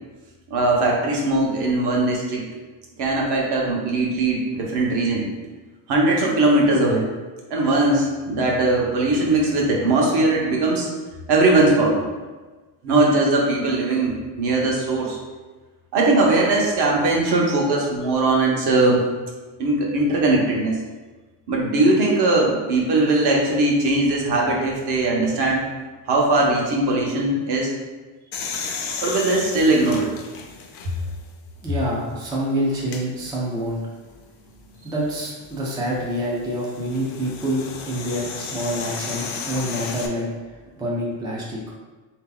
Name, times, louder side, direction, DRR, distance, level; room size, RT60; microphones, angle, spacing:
voice 1, 0.5-2.4 3.0-5.3 5.9-7.1 7.5-10.9 11.3-12.1 12.8-15.2 15.9-19.0 19.6-20.8 21.5-25.7 26.1-27.7 29.0-30.1, right 2 dB, 55° right, -2 dB, 1.0 m, -20 dB
sound 1, 28.3-31.2 31.8-31.9 32.8-33.0 35.2-40.1, left 5 dB, 45° left, 0.5 m, -34 dB
voice 2, 31.6-33.8 34.8-41.7, equal, 10° right, -5 dB, 0.3 m, -27 dB
3.8 x 2.8 x 3.8 m, 1.3 s
cardioid pair, 170°, 48 cm